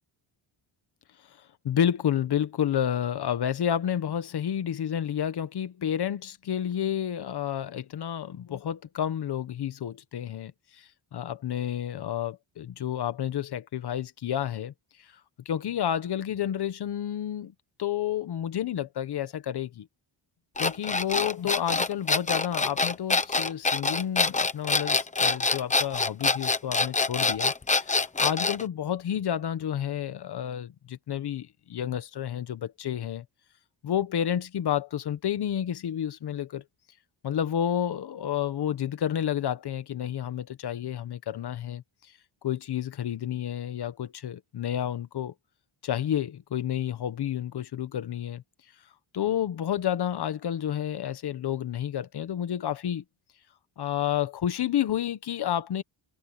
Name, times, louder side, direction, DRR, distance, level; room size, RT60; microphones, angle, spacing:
voice 1, 1.6-14.7 15.4-17.5 17.8-19.9 20.6-33.2 33.8-36.6 37.2-41.8 42.4-45.3 45.8-48.4 49.1-53.0 53.8-55.8, left 10 dB, 55° left, 1.1 m, -30 dB
sound 1, 20.6-28.6, left 3 dB, 15° left, 1.0 m, -25 dB
wide cardioid pair, 175°, 48 cm